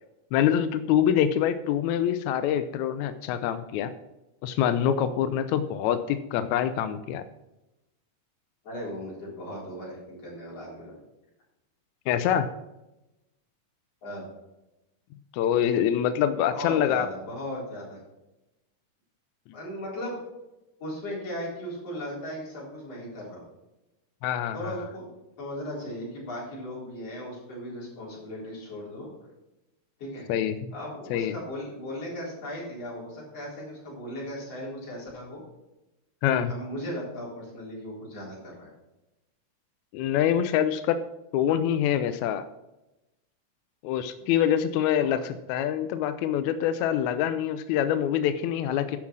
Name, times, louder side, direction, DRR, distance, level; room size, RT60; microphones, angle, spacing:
voice 1, 0.3-3.9 4.4-7.2 12.1-12.5 15.3-17.1 24.2-24.8 30.3-30.7 31.1-31.3 36.2-36.5 39.9-41.0 41.3-42.5 43.8-49.0, left 10 dB, 80° left, 11 dB, 1.7 m, -25 dB
voice 2, 8.6-10.9 14.0-14.3 16.5-18.0 19.5-20.2 20.8-23.5 24.5-25.1 25.4-29.1 30.0-30.2 30.7-35.4 36.3-38.7 44.2-44.3 45.0-45.2, equal, 50° left, -5 dB, 4.9 m, -37 dB
11.0 x 5.9 x 6.2 m, 0.96 s
omnidirectional pair, 3.8 m